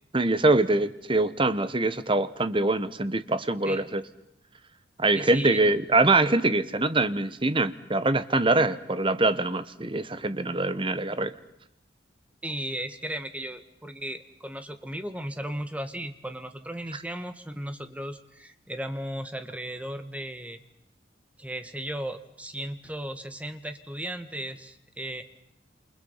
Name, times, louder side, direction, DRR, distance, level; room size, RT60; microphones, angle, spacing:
voice 1, 0.1-4.0 5.0-11.3, right 2 dB, 30° right, 12 dB, 1.3 m, -24 dB
voice 2, 5.1-5.7 12.4-20.6 21.4-25.2, right 1 dB, 5° right, 8 dB, 1.8 m, -36 dB
28.5 x 28.5 x 5.8 m, 0.76 s
head